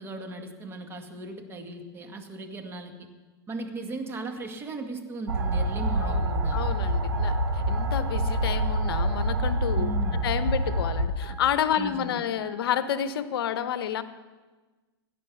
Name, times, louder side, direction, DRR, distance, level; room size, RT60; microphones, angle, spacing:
voice 1, 0.0-3.1 3.5-6.6 9.8-10.2 11.8-12.2, right 2 dB, 15° right, 5 dB, 1.7 m, -37 dB
sound 1, 5.3-11.1, right 1 dB, 90° right, 1.6 m, -26 dB
sound 2, 5.4-13.0, equal, 70° right, 2.6 m, -49 dB
voice 2, 6.5-9.9 10.2-14.0, left 9 dB, 65° left, 12 dB, 0.9 m, -29 dB
17.5 x 10.0 x 6.2 m, 1.3 s
hypercardioid pair, 135°, 13 cm